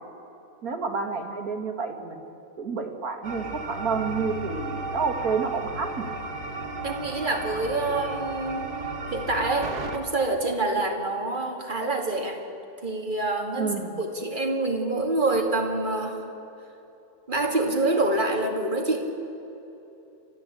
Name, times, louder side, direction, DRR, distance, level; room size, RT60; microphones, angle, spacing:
voice 1, 0.6-2.2 2.6-6.1 13.6-14.0, right 5 dB, 65° right, 5 dB, 2.3 m, -29 dB
sound 1, 3.2-10.0, right 3 dB, 85° right, 2.3 m, -34 dB
voice 2, 6.8-8.7 9.1-12.4 12.8-16.2 17.3-19.1, right 2 dB, 30° right, 1 dB, 2.5 m, -26 dB
29.5 x 13.0 x 8.4 m, 3.0 s
omnidirectional pair, 1.6 m